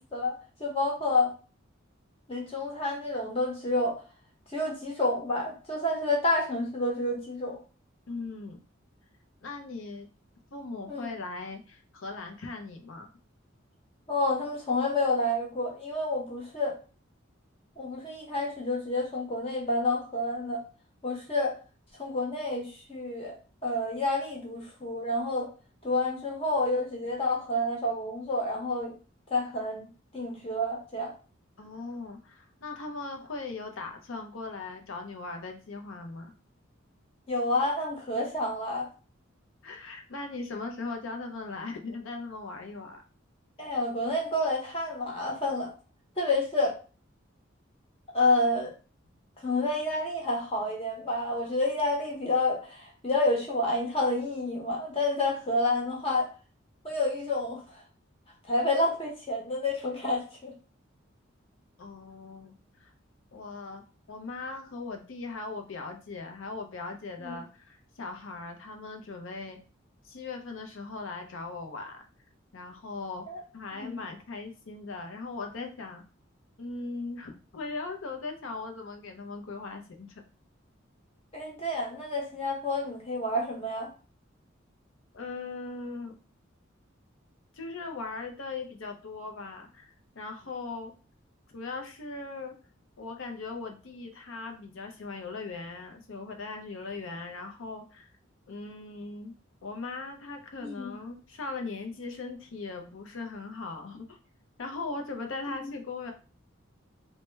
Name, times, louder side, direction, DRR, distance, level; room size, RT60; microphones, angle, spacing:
voice 1, 0.0-1.4 2.3-4.0 4.5-7.6 10.9-11.1 14.1-16.8 17.8-20.6 21.0-21.6 22.0-23.3 23.6-25.5 25.8-28.9 29.3-29.9 30.1-31.1 37.3-38.9 43.6-45.7 46.2-46.8 48.1-48.7 49.4-56.3 56.8-57.8 58.5-60.5 67.2-67.4 73.3-73.4 73.7-74.0 81.3-83.9 100.6-100.9, left 2 dB, 30° left, -1 dB, 0.9 m, -29 dB
voice 2, 8.1-8.6 9.4-10.1 10.5-13.1 31.6-36.3 39.6-43.0 61.8-62.5 62.8-62.9 63.3-69.6 70.0-72.0 72.5-73.3 73.5-76.0 76.6-80.2 85.1-86.2 87.5-90.9 91.5-92.6 93.0-98.1 98.5-99.3 99.6-104.2 104.6-106.1, left 3 dB, 70° left, 4 dB, 0.5 m, -39 dB
3.1 x 2.1 x 3.2 m, 0.35 s
head